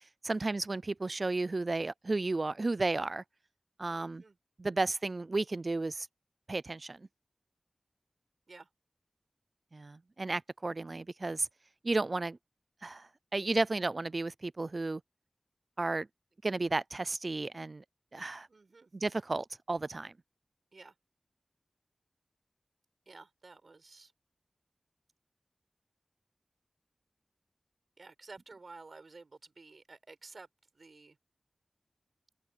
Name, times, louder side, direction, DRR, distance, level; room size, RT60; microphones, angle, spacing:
voice 1, 0.2-3.2 3.8-4.2 4.6-6.1 6.5-7.1 9.7-11.5 11.8-12.4 12.8-15.0 15.8-16.1 16.4-17.8 18.1-18.5 18.9-20.1, right 3 dB, 55° right, 0.4 m, -33 dB
voice 2, 3.9-4.4 8.5-8.7 18.5-18.9 20.7-20.9 23.1-24.1 28.0-31.2, right 3 dB, 75° right, 6.4 m, -53 dB
wide cardioid pair, 50°, 0 cm